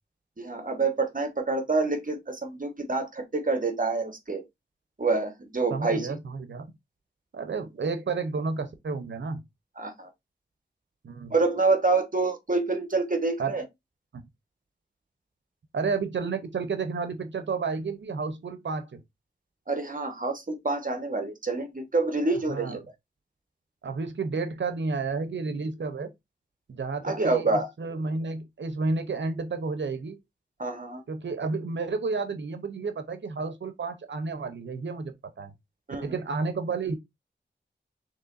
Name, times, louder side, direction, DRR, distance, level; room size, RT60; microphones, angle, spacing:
voice 1, 0.4-4.4 5.0-6.1 9.8-10.1 11.3-13.6 19.7-22.8 27.0-27.7 30.6-31.0 35.9-36.0, right 3 dB, 45° right, 1.2 m, -27 dB
voice 2, 5.7-6.7 7.3-9.4 11.0-11.3 13.4-13.6 15.7-19.0 22.5-22.8 23.8-26.1 26.7-30.2 31.1-35.5 36.0-37.0, right 4 dB, 80° right, 0.7 m, -31 dB
6.5 x 3.0 x 2.5 m
wide cardioid pair, 55°, 19 cm